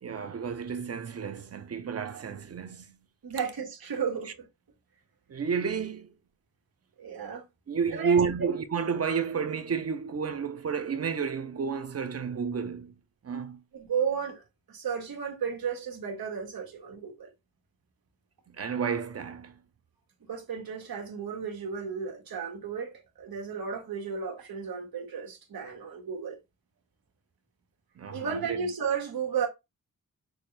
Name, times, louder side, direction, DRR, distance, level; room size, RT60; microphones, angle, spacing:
voice 1, 0.0-3.0 5.3-6.1 7.7-12.9 13.2-13.6 18.5-19.6 28.0-28.6, right 6 dB, 45° right, 0.7 m, -31 dB
voice 2, 3.2-4.3 7.0-7.4 7.9-8.2 13.7-17.3 20.3-26.4 28.1-29.5, right 6 dB, 85° right, 1.7 m, -33 dB
6.2 x 2.5 x 3.3 m
wide cardioid pair, 150°, 35 cm